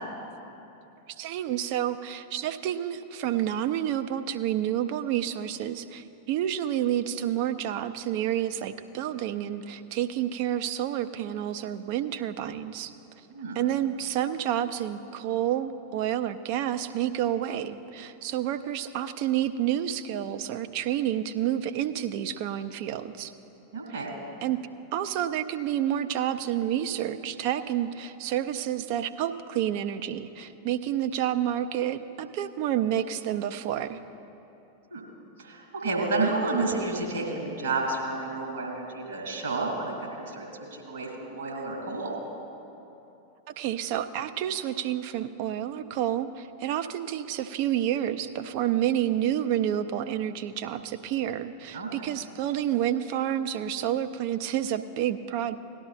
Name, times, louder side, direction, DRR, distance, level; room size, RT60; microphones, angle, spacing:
voice 1, 1.1-12.9 13.5-23.3 24.4-24.6 24.9-34.0 43.6-55.6, right 11 dB, 45° right, 10 dB, 0.4 m, -29 dB
voice 2, 23.7-24.1 34.9-35.1 35.4-40.5 40.7-42.2 51.7-52.1, right 3 dB, 65° right, -1 dB, 2.6 m, -30 dB
18.0 x 11.5 x 2.5 m, 2.9 s
figure-of-eight pair, 90°, 0 cm